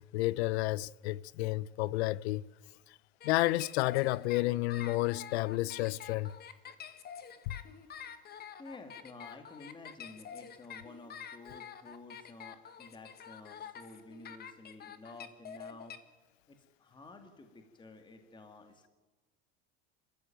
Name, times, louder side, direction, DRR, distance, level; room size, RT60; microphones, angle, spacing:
voice 1, 0.0-2.4 3.2-6.3, left 18 dB, 90° left, 0.7 m, -31 dB
sound 1, 3.2-16.0, left 8 dB, 30° left, 1.6 m, -47 dB
voice 2, 8.6-15.9 16.5-18.9, left 2 dB, 15° left, 2.3 m, -52 dB
25.5 x 13.5 x 9.1 m
supercardioid pair, 135°, 31 cm